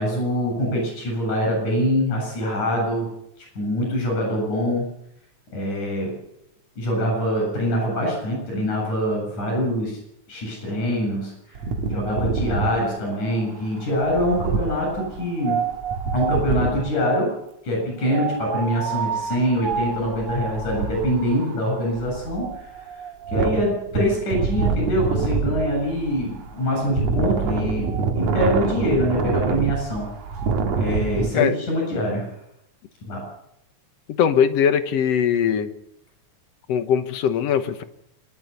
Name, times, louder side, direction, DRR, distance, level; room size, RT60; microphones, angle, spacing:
voice 1, 0.0-3.1 3.6-4.8 5.5-6.1 6.8-10.0 10.3-11.6 11.9-15.6 16.1-17.3 17.6-22.7 23.3-27.9 28.2-30.1 30.8-32.3 33.1-33.2, equal, 85° left, 1 dB, 9.3 m, -24 dB
Wind, 11.6-17.0 18.0-31.3, right 4 dB, 65° right, 2.6 m, -26 dB
voice 2, 34.1-35.7 36.7-37.8, left 8 dB, 65° left, 10 dB, 2.1 m, -20 dB
25.5 x 12.5 x 8.3 m, 0.80 s
omnidirectional pair, 3.4 m